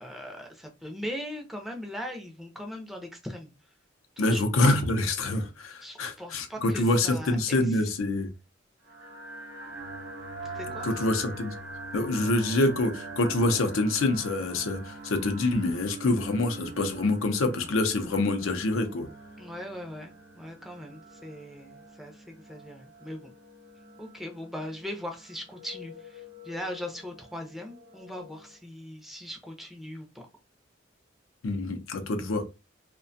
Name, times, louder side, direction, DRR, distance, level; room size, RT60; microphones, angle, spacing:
voice 1, 0.0-3.5 4.2-4.4 5.8-7.8 10.5-10.9 19.4-23.3 24.0-30.3, equal, ahead, 0.4 m, -40 dB
voice 2, 4.2-8.3 10.8-11.5 11.9-19.1 31.4-32.4, left 2 dB, 85° left, 0.5 m, -26 dB
sound 1, 8.9-28.6, right 2 dB, 60° right, 0.8 m, -44 dB
2.4 x 2.2 x 2.5 m
head